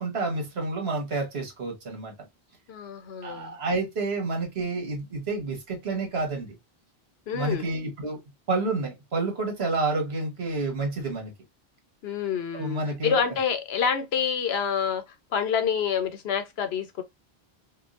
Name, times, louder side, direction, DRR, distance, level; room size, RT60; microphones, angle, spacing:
voice 1, 0.0-2.1 3.2-6.5 7.3-8.2 8.5-11.3 12.5-13.2, right 3 dB, 70° right, 1.5 m, -29 dB
voice 2, 2.7-3.6 7.3-7.7 12.0-15.0 15.3-17.0, left 7 dB, 75° left, 1.0 m, -27 dB
4.6 x 2.4 x 2.4 m
omnidirectional pair, 1.1 m